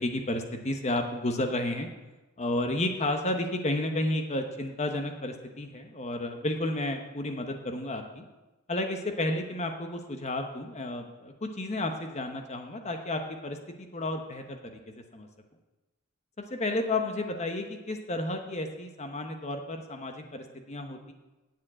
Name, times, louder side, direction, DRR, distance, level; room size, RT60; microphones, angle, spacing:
voice 1, 0.0-1.9 2.4-8.3 8.7-15.3 16.5-21.1, left 1 dB, 35° left, 5 dB, 1.0 m, -32 dB
8.7 x 7.4 x 8.8 m, 1.1 s
head